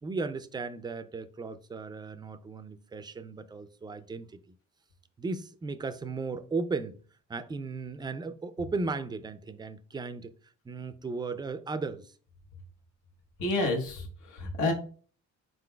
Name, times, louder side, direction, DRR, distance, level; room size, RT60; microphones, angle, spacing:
voice 1, 0.0-4.3 5.2-7.0 7.3-10.3 10.7-12.1, right 3 dB, 15° right, 0.3 m, -36 dB
voice 2, 13.4-14.7, left 2 dB, 80° left, 1.1 m, -29 dB
4.2 x 3.8 x 2.2 m
cardioid pair, 90°, 30 cm